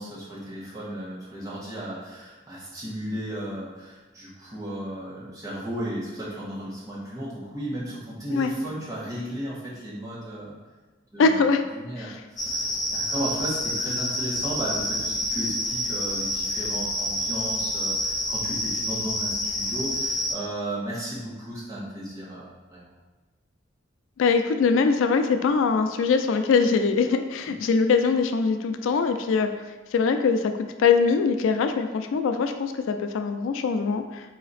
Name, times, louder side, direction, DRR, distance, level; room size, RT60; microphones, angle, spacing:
voice 1, 0.0-10.6 11.1-11.4 11.7-22.9 27.4-27.6, right 1 dB, 20° right, -8 dB, 1.3 m, -34 dB
voice 2, 11.2-11.6 24.2-29.5 29.9-30.5 30.8-34.4, left 5 dB, 85° left, 7 dB, 0.3 m, -22 dB
sound 1, 12.4-20.3, left 1 dB, 20° left, 0.5 m, -28 dB
4.1 x 2.9 x 4.0 m, 1.2 s
head